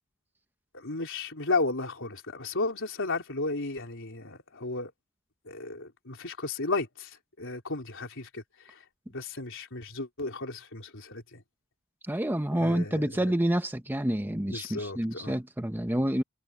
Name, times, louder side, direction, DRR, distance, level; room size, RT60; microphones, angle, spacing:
voice 1, 0.7-4.9 5.5-8.8 9.1-11.4 12.5-13.1 14.5-15.4, left 3 dB, 60° left, 4.0 m, -34 dB
voice 2, 12.1-16.2, right 1 dB, 10° right, 0.9 m, -28 dB
head